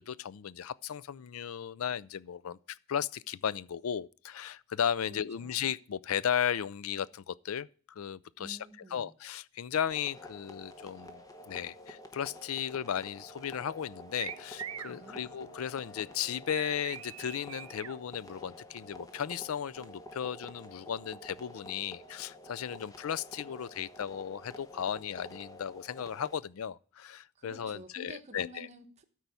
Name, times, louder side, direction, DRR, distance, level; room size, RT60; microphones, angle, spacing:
voice 1, 0.0-8.6 8.9-28.7, left 8 dB, 80° left, 0.4 m, -35 dB
voice 2, 5.0-5.5 8.4-9.1 14.9-15.3 27.4-29.0, right 1 dB, 30° right, 1.1 m, -50 dB
sound 1, 9.9-26.4, left 1 dB, 15° left, 1.0 m, -49 dB
Bowed string instrument, 14.1-18.4, left 1 dB, 60° left, 1.6 m, -59 dB
sound 2, 14.2-15.0 16.5-18.0, right 9 dB, 80° right, 0.7 m, -42 dB
13.0 x 4.7 x 6.9 m
head